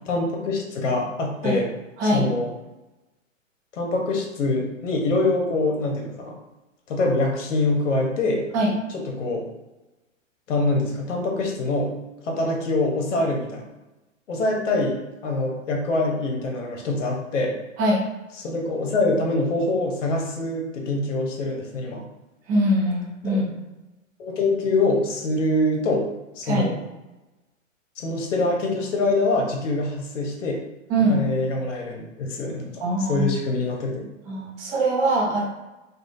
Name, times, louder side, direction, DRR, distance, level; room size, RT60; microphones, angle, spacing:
voice 1, 0.1-1.7 2.0-2.5 3.7-6.3 6.9-8.4 8.9-9.5 10.5-11.9 12.2-13.6 14.3-15.0 15.2-17.5 18.4-22.0 23.3-23.4 24.2-26.1 26.3-26.8 28.0-30.6 31.0-34.1, left 2 dB, 65° left, 1 dB, 1.0 m, -24 dB
voice 2, 2.0-2.3 8.5-8.8 17.8-18.0 22.5-23.6 26.5-26.7 30.9-31.2 32.8-33.3 34.3-35.4, right 1 dB, 20° right, -3 dB, 0.6 m, -22 dB
3.2 x 2.4 x 2.5 m, 1.1 s
hypercardioid pair, 115°, 40 cm